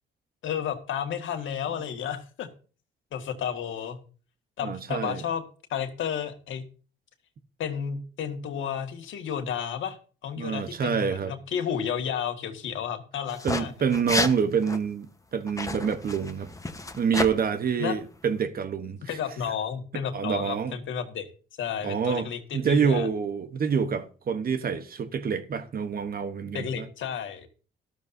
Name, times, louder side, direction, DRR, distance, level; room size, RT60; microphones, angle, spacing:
voice 1, 0.4-2.5 3.1-4.0 4.6-5.4 5.7-6.6 7.6-10.0 10.2-13.7 17.8-18.0 19.1-21.3 21.6-23.1 26.5-27.5, left 8 dB, 75° left, 1.8 m, -32 dB
voice 2, 4.6-5.2 10.4-11.3 13.4-16.5 17.0-19.1 20.1-20.7 21.8-22.3 22.5-26.9, right 6 dB, 50° right, 1.1 m, -27 dB
sound 1, 13.3-13.6 13.9-14.3 14.6-14.8 15.5-17.3, left 2 dB, 15° left, 1.1 m, -30 dB
13.0 x 12.5 x 2.7 m
cardioid pair, 90°, 20 cm